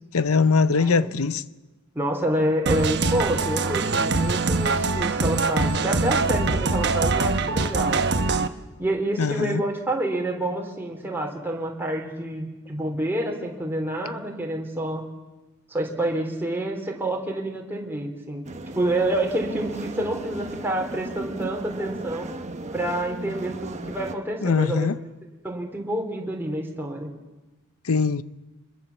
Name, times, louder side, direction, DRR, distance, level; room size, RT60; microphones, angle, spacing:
voice 1, 0.1-1.4 9.2-9.6 24.4-25.0 27.8-28.2, left 4 dB, 70° left, 0.7 m, -21 dB
voice 2, 0.7-1.1 2.0-8.4 8.8-15.0 15.7-18.4 18.7-22.3 22.7-25.0 25.4-27.1, right 1 dB, 10° right, 3.5 m, -28 dB
sound 1, 2.7-8.5, right 3 dB, 50° right, 1.2 m, -23 dB
sound 2, 18.4-24.1, right 2 dB, 30° right, 1.3 m, -36 dB
25.5 x 22.0 x 7.2 m
head